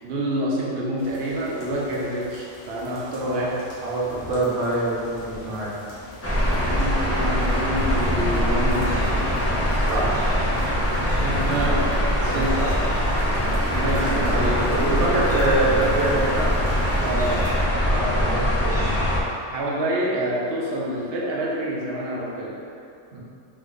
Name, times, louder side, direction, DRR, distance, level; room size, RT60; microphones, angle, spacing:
voice 1, 0.0-3.6 6.5-9.1 10.9-12.6 13.7-14.7 17.0-17.5 19.5-22.6, right 1 dB, 60° right, -4 dB, 1.0 m, -27 dB
sound 1, 1.0-17.5, left 1 dB, 40° left, 0.9 m, -39 dB
voice 2, 3.8-5.7 9.9-10.2 12.3-12.7 14.0-16.5 17.8-18.8 23.1-23.2, right 2 dB, 85° right, -6 dB, 1.3 m, -25 dB
sound 2, 6.2-19.2, equal, 20° left, 0.4 m, -22 dB
3.6 x 3.2 x 3.9 m, 2.5 s
omnidirectional pair, 1.2 m